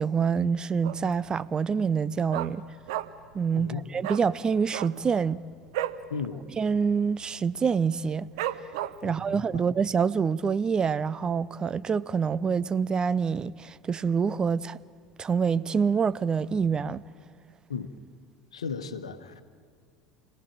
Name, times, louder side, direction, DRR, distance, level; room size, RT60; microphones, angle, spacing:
voice 1, 0.0-2.6 3.3-5.4 6.6-8.3 9.0-14.8 15.2-17.0, right 6 dB, 25° right, 0.5 m, -26 dB
Dog, 0.8-1.3 1.5-1.6 1.9-3.3 3.6-3.7 4.0-4.3 4.6-6.1 6.4-6.6 6.8-7.2 7.7-7.8 8.4-9.2 9.6-9.7, right 13 dB, 60° right, 0.8 m, -33 dB
voice 2, 3.6-3.9 6.1-6.4 9.0-9.6 17.7-17.9 18.5-19.4, left 5 dB, 75° left, 1.1 m, -35 dB
26.0 x 17.5 x 8.9 m
figure-of-eight pair, 70°, 3 cm